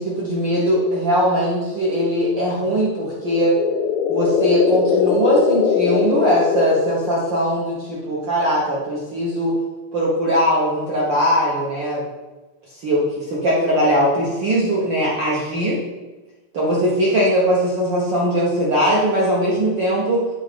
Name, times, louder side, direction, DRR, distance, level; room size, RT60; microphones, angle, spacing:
voice 1, 0.0-3.5 4.1-9.5 9.9-12.0 12.8-15.8 16.5-20.3, equal, 65° right, -5 dB, 1.2 m, -20 dB
sound 1, 3.0-7.4, left 7 dB, 80° left, 1.8 m, -21 dB
7.5 x 3.2 x 5.0 m, 1.1 s
omnidirectional pair, 3.3 m